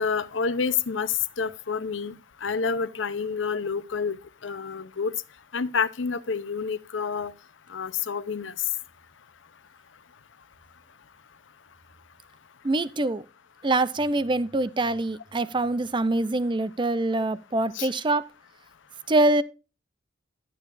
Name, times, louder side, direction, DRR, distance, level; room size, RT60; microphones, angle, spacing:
voice 1, 0.0-2.1 2.4-4.2 4.4-5.1 5.5-7.3 7.7-8.5 17.7-17.9, left 5 dB, 85° left, 0.7 m, -28 dB
voice 2, 12.6-13.2 13.6-18.2 19.1-19.4, right 2 dB, 25° right, 0.5 m, -24 dB
11.5 x 10.5 x 2.5 m
head